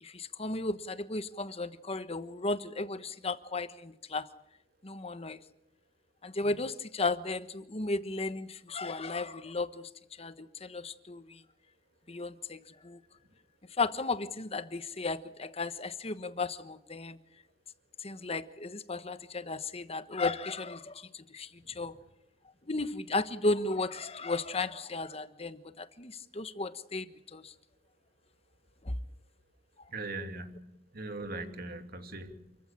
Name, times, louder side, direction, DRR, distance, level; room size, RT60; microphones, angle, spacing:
voice 1, 0.0-4.3 4.8-5.4 6.2-9.9 10.2-11.4 12.1-13.0 13.8-17.2 18.0-22.0 22.7-27.1 27.3-27.5 28.9-29.0, left 3 dB, 35° left, 1.3 m, -35 dB
voice 2, 21.6-22.0 29.9-32.6, right 2 dB, 55° right, 2.6 m, -41 dB
28.5 x 15.0 x 8.9 m
head